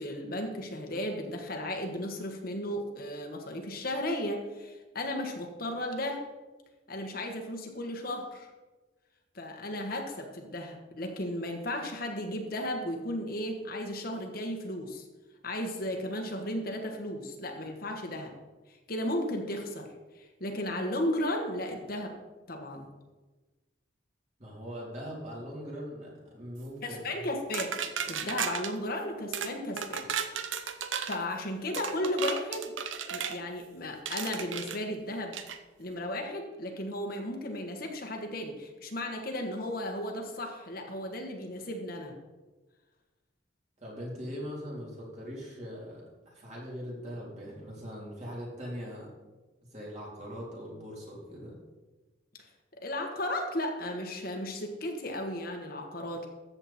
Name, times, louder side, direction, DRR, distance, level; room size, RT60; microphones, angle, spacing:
voice 1, 0.0-6.2 6.9-8.5 9.3-15.1 15.4-18.3 18.9-19.9 20.1-22.1 22.5-22.9 26.8-27.7 28.1-30.1 31.1-32.7 33.1-35.4 35.8-42.1 52.8-56.3, left 1 dB, 50° left, 2 dB, 1.5 m, -35 dB
voice 2, 24.4-27.3 43.8-49.1 49.7-51.6, equal, 35° right, -4 dB, 3.7 m, -41 dB
sound 1, 27.5-28.7 29.3-29.5 29.8-31.2 31.7-33.4 34.1-34.8 35.3-35.6, right 7 dB, 90° right, 0.9 m, -34 dB
14.0 x 8.0 x 4.3 m, 1.2 s
head